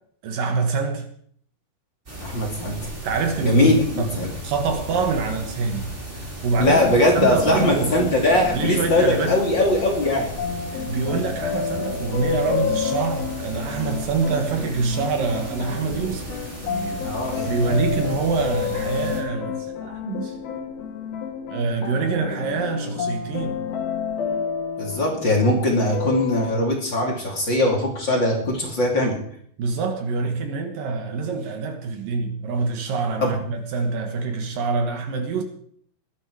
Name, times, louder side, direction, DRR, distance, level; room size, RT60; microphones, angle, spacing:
voice 1, 0.2-1.1 3.0-5.9 6.2-8.0 8.5-9.4 10.8-17.0 17.4-20.7 21.5-23.6 29.6-35.4, right 4 dB, 65° right, 3.0 m, -25 dB
sound 1, 2.1-19.2, right 1 dB, 15° right, 4.0 m, -36 dB
voice 2, 2.2-2.9 3.4-4.3 6.6-10.3 17.0-17.6 24.8-29.2 33.2-33.4, left 1 dB, 30° left, 3.0 m, -21 dB
sound 2, 7.2-26.6, left 7 dB, 75° left, 3.5 m, -30 dB
20.5 x 11.0 x 4.8 m
omnidirectional pair, 4.5 m